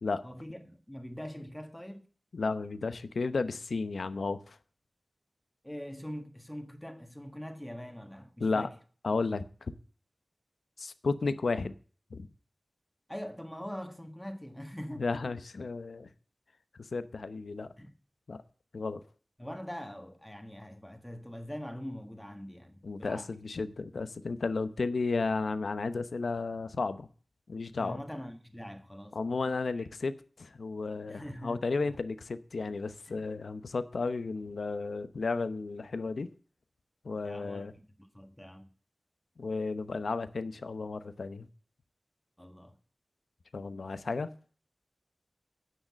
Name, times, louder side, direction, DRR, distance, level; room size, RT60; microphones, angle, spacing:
voice 1, 0.2-2.0 5.6-8.7 13.1-15.3 17.8-17.9 19.4-23.3 27.8-29.2 29.7-29.9 31.1-32.0 33.1-33.2 37.2-37.7 38.1-38.7 42.4-42.7, equal, 10° left, 1.4 m, -43 dB
voice 2, 2.3-4.6 8.4-8.7 9.0-9.7 10.8-11.7 12.1-12.3 15.0-16.1 16.8-17.7 18.3-18.4 18.7-19.0 22.8-27.1 27.5-28.0 29.1-36.3 37.0-37.7 39.4-41.5 43.5-44.3, left 4 dB, 85° left, 0.8 m, -33 dB
9.6 x 6.6 x 7.4 m
wide cardioid pair, 80°, 0 cm